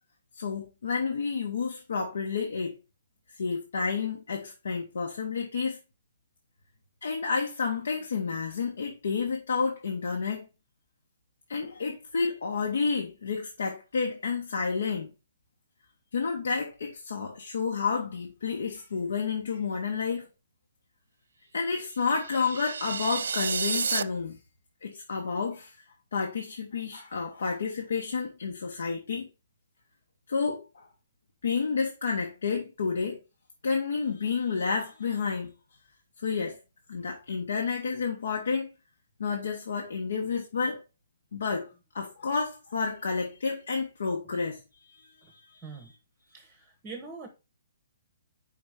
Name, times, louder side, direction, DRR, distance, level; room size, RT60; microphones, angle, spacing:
voice 1, 0.3-2.8 3.4-5.8 7.0-10.5 11.5-15.1 16.1-20.3 21.5-24.4 24.8-25.8 26.1-29.3 30.3-30.9 31.4-33.2 33.6-35.5 36.2-36.6 36.9-38.7 39.2-40.8 41.3-45.6, left 5 dB, 75° left, 1.2 m, -30 dB
sound 1, 22.0-24.0, right 6 dB, 90° right, 0.4 m, -31 dB
voice 2, 45.6-45.9 46.3-47.3, right 4 dB, 10° right, 0.9 m, -43 dB
5.2 x 3.9 x 4.9 m
hypercardioid pair, 175°, 0 cm